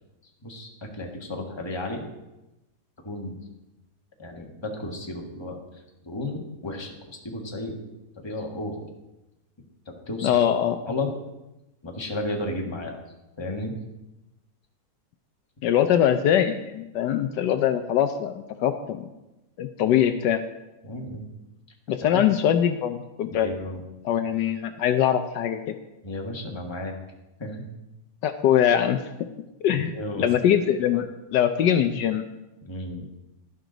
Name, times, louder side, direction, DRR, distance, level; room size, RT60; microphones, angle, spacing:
voice 1, 0.9-2.0 3.0-3.4 4.2-6.9 7.2-7.8 8.2-8.9 9.8-10.3 10.9-11.1 11.8-13.0 13.4-13.7 20.8-21.3 22.1-22.2 23.4-23.8 26.0-26.9 27.4-27.7 29.8-30.3 32.6-33.1, left 1 dB, 15° left, 0 dB, 1.4 m, -33 dB
voice 2, 10.2-10.8 15.6-19.1 19.6-20.4 21.9-23.5 24.0-25.8 28.2-29.3 29.6-32.3, left 10 dB, 75° left, 8 dB, 1.2 m, -23 dB
12.0 x 11.0 x 3.9 m, 0.97 s
omnidirectional pair, 1.9 m